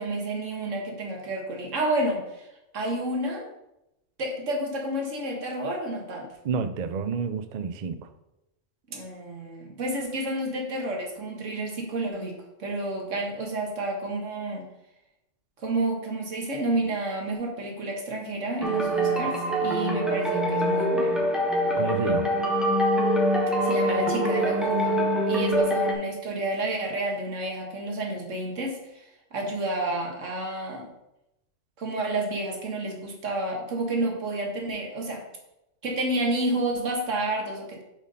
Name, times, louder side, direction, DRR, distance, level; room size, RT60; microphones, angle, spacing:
voice 1, 0.0-2.5 2.7-3.5 4.2-6.3 8.9-14.7 15.6-21.2 23.6-30.9 31.8-35.2 35.8-37.8, right 2 dB, 90° right, 1 dB, 1.7 m, -30 dB
voice 2, 6.4-8.0 21.8-22.3, right 6 dB, 55° right, 10 dB, 0.5 m, -29 dB
sound 1, 18.6-25.9, equal, ahead, 1.0 m, -24 dB
6.0 x 4.2 x 5.3 m, 0.89 s
omnidirectional pair, 1.2 m